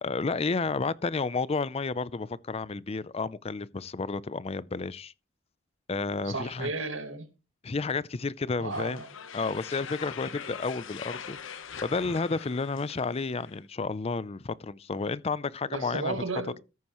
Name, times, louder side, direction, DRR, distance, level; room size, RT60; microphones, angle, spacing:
voice 1, 0.0-5.1 5.9-6.7 7.6-9.0 9.3-16.2, left 4 dB, 30° left, 0.4 m, -31 dB
voice 2, 6.2-7.3 8.6-9.1 15.7-16.6, right 3 dB, 80° right, 2.0 m, -34 dB
sound 1, 8.7-13.6, left 7 dB, 80° left, 1.0 m, -42 dB
14.0 x 9.3 x 3.0 m
head